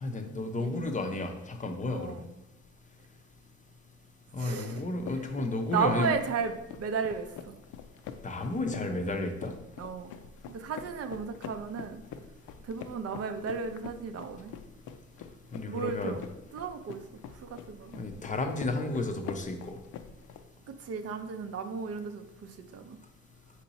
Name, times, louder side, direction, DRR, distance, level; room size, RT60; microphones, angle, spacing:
voice 1, 0.0-2.2 4.3-6.1 8.2-9.5 15.5-16.2 18.0-19.7, left 2 dB, 25° left, 4 dB, 0.5 m, -32 dB
voice 2, 1.9-2.2 4.4-4.8 5.2-5.3 5.7-7.5 9.8-10.1 10.5-12.0 12.6-14.5 15.7-16.2 16.5-17.0 17.3-18.0 20.7-23.0, right 5 dB, 55° right, 7 dB, 0.5 m, -34 dB
sound 1, 4.8-20.4, left 8 dB, 80° left, 0.5 m, -45 dB
4.5 x 2.9 x 4.1 m, 0.90 s
cardioid pair, 90°, 30 cm